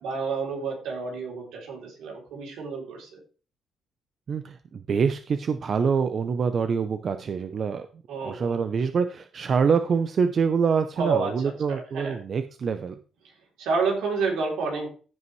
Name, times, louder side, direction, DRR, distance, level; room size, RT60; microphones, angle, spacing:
voice 1, 0.0-3.2 8.1-8.6 11.0-12.2 13.6-14.9, right 4 dB, 85° right, 0 dB, 3.4 m, -29 dB
voice 2, 4.3-7.9 8.2-13.0, right 6 dB, 50° right, 9 dB, 0.7 m, -25 dB
15.0 x 5.3 x 3.2 m, 0.38 s
cardioid pair, 90°, 0 cm